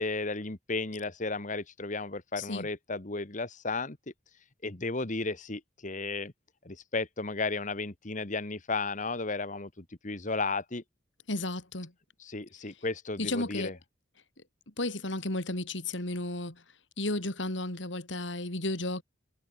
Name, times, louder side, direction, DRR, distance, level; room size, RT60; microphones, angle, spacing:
voice 1, 0.0-4.0 4.6-6.3 6.7-10.8 12.2-13.7, left 3 dB, 40° left, 1.8 m, -34 dB
voice 2, 2.4-2.7 11.3-11.9 13.2-13.8 14.8-16.6 17.0-19.0, left 2 dB, 75° left, 3.7 m, -33 dB
head